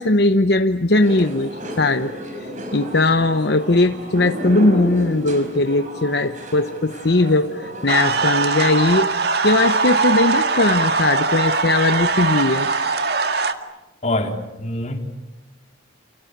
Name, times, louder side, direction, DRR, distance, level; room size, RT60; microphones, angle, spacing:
voice 1, 0.0-2.1 2.4-9.2 9.4-12.7, left 2 dB, 60° left, 8 dB, 0.9 m, -19 dB
sound 1, 1.0-8.4, equal, 40° right, 4.7 m, -32 dB
sound 2, 7.9-13.5, right 4 dB, 55° right, 1.9 m, -21 dB
voice 2, 14.0-15.0, left 1 dB, 35° left, 3 dB, 3.8 m, -24 dB
30.0 x 29.0 x 6.8 m, 1.0 s
head